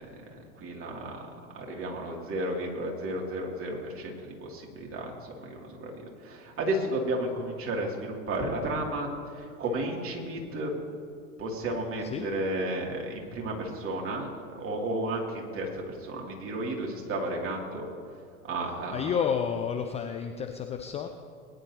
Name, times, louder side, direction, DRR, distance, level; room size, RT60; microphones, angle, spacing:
voice 1, 0.1-1.2 1.5-10.7 11.4-14.3 14.5-17.9 18.4-19.1, right 1 dB, 30° right, -1 dB, 2.8 m, -33 dB
voice 2, 18.9-21.1, left 7 dB, 15° left, 5 dB, 0.5 m, -30 dB
20.5 x 10.5 x 2.9 m, 2.4 s
hypercardioid pair, 100°, 43 cm